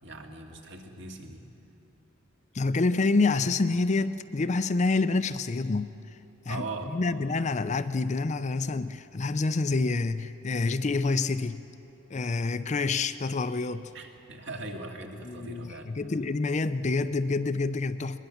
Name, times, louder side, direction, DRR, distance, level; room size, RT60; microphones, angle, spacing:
voice 1, 0.0-1.4 6.5-6.9 13.9-15.9, right 2 dB, 60° right, 2 dB, 2.2 m, -40 dB
voice 2, 2.5-5.9 6.5-6.6 6.9-11.6 12.1-13.9 15.2-18.2, left 3 dB, 35° left, 12 dB, 0.5 m, -27 dB
21.0 x 21.0 x 7.1 m, 2.9 s
head